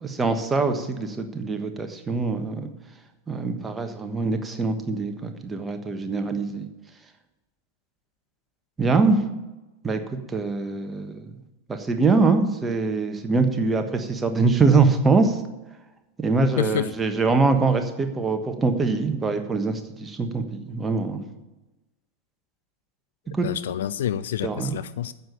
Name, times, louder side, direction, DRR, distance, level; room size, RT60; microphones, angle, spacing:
voice 1, 0.0-2.7 3.3-6.7 8.8-9.3 9.8-10.0 10.3-11.3 11.7-15.4 16.2-21.3 23.4-23.5 24.4-24.8, right 4 dB, 15° right, 6 dB, 1.3 m, -23 dB
voice 2, 16.6-16.9 23.4-25.1, left 10 dB, 60° left, 14 dB, 0.4 m, -28 dB
9.4 x 7.2 x 8.5 m, 1.1 s
figure-of-eight pair, 90°, 0 cm